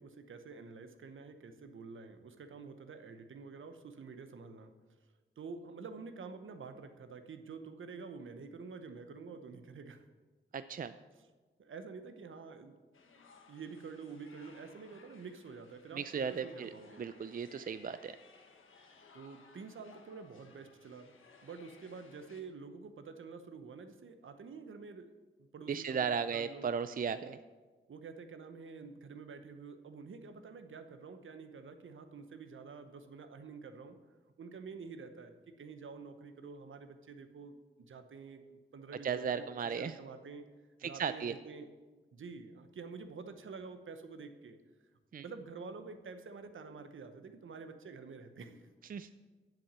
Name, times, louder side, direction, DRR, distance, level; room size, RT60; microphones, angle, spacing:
voice 1, 0.0-4.7 5.4-10.1 11.6-12.8 13.5-17.0 19.1-21.1 21.4-25.1 25.4-26.7 27.9-34.0 34.4-39.5 39.8-40.5 40.8-41.7 42.1-44.6 45.2-48.7, right 4 dB, 75° right, 9 dB, 0.9 m, -48 dB
voice 2, 10.5-10.9 15.9-16.7 17.0-18.1 25.7-27.4 39.0-40.0 40.8-41.3 45.1-45.2 48.9-49.1, right 6 dB, 45° right, 12 dB, 0.4 m, -36 dB
sound 1, 12.9-22.4, left 4 dB, 80° left, 1.3 m, -61 dB
7.7 x 7.3 x 7.4 m, 1.3 s
cardioid pair, 55°, 21 cm